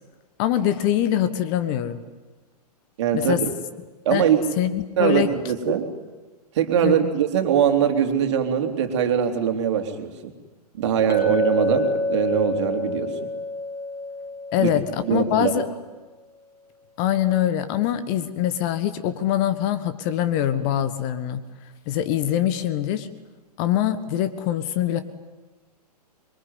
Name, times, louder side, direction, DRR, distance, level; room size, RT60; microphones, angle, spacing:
voice 1, 0.4-2.0 3.1-3.4 4.1-4.2 4.6-5.3 6.8-6.9 14.5-14.8 15.1-15.7 17.0-21.4 21.9-23.1 23.6-25.0, left 11 dB, 30° left, 12 dB, 1.4 m, -23 dB
voice 2, 3.0-3.5 4.0-4.4 5.0-5.9 6.5-10.3 10.7-13.2 14.6-14.7 15.1-15.5, right 8 dB, 45° right, 5 dB, 3.1 m, -22 dB
Chink clink, 11.1-15.3, left 2 dB, 15° left, 4.7 m, -28 dB
25.5 x 23.0 x 9.5 m, 1.2 s
figure-of-eight pair, 115°, 21 cm